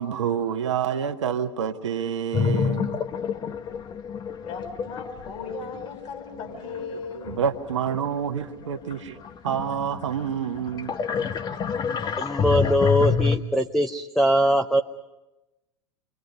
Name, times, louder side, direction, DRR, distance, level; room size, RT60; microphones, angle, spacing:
voice 1, 0.0-3.0 6.8-9.2 9.4-10.9, right 8 dB, 75° right, 5 dB, 1.5 m, -28 dB
sound 1, 2.3-8.3 8.7-13.4, left 6 dB, 25° left, 1.1 m, -28 dB
voice 2, 4.3-7.2, left 5 dB, 50° left, 1 dB, 7.0 m, -37 dB
voice 3, 12.2-14.8, equal, ahead, 8 dB, 0.8 m, -21 dB
29.0 x 24.5 x 5.5 m, 1.0 s
figure-of-eight pair, 90°, 16 cm